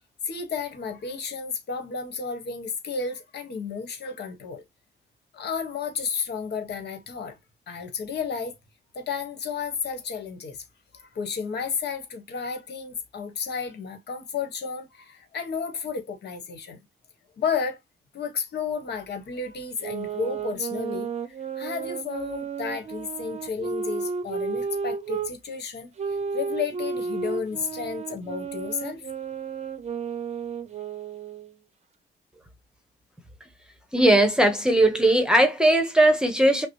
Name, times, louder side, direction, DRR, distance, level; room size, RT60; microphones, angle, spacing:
voice 1, 0.2-4.6 5.3-7.4 7.7-8.6 8.9-10.6 10.9-16.8 17.4-17.8 18.1-21.1 21.6-25.9 26.3-29.1, left 5 dB, 65° left, 1.3 m, -32 dB
sound 1, 19.8-25.3 26.0-31.5, right 5 dB, 40° right, 0.6 m, -32 dB
voice 2, 33.9-36.7, right 1 dB, 5° right, 0.9 m, -19 dB
5.8 x 2.1 x 3.0 m
cardioid pair, 120°, 18 cm